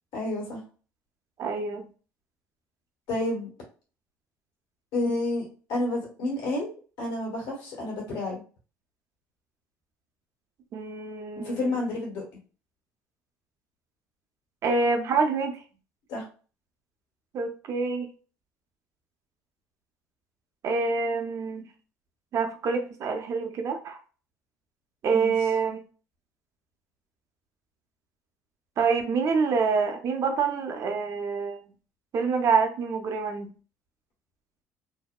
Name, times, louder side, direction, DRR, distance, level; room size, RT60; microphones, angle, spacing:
voice 1, 0.1-0.6 3.1-3.5 4.9-5.4 5.7-8.4 11.4-12.2 16.1-16.3 25.1-25.3, left 2 dB, 80° left, -3 dB, 1.3 m, -30 dB
voice 2, 1.4-1.9 10.7-11.6 14.6-15.6 17.3-18.1 20.6-21.6 22.3-24.0 25.0-25.8 28.8-31.6 32.1-33.5, right 5 dB, 50° right, 5 dB, 0.6 m, -26 dB
2.7 x 2.1 x 2.3 m, 0.38 s
supercardioid pair, 80°, 7 cm